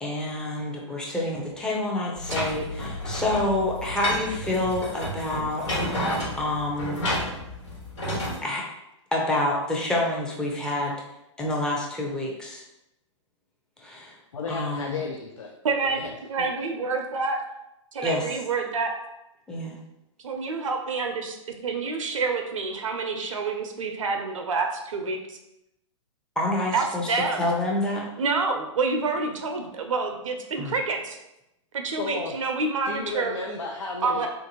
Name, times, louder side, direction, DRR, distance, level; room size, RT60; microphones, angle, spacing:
voice 1, 0.0-5.8 6.4-7.0 8.4-8.7 9.1-11.0 11.4-12.6 13.8-14.2 14.5-15.0 18.0-18.4 19.5-19.8 26.4-28.1 30.6-30.7, left 1 dB, 5° left, -3 dB, 0.5 m, -28 dB
sound 1, 2.2-8.4, left 1 dB, 70° left, 1.4 m, -30 dB
voice 2, 14.3-15.5 15.8-16.1 16.4-16.7 32.0-32.4 32.9-34.2, left 4 dB, 85° left, -1 dB, 0.5 m, -33 dB
voice 3, 15.6-16.0 16.3-17.4 17.9-18.9 20.2-21.4 21.6-25.4 26.7-27.5 28.2-31.2 31.7-33.4 34.0-34.3, right 4 dB, 85° right, 4 dB, 0.5 m, -27 dB
3.4 x 2.5 x 2.8 m, 0.88 s
hypercardioid pair, 125°, 16 cm